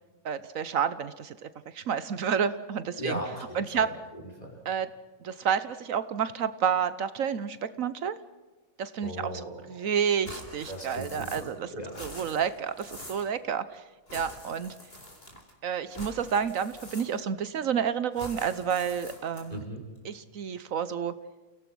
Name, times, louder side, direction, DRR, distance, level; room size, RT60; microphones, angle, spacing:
voice 1, 0.2-1.5 1.7-3.2 3.5-3.9 4.7-4.9 5.2-8.2 8.8-9.3 9.7-11.7 12.0-13.8 14.1-14.7 15.6-19.6 20.0-21.1, right 7 dB, 70° right, 14 dB, 1.2 m, -30 dB
voice 2, 3.0-4.6 9.0-9.9 10.7-12.0 19.5-19.8, right 1 dB, 25° left, 0 dB, 5.4 m, -38 dB
sound 1, 10.2-11.6 11.8-13.3 14.1-15.5 15.9-17.4 18.1-19.6, left 1 dB, 45° left, 4.3 m, -45 dB
29.5 x 17.0 x 6.2 m, 1.3 s
omnidirectional pair, 1.5 m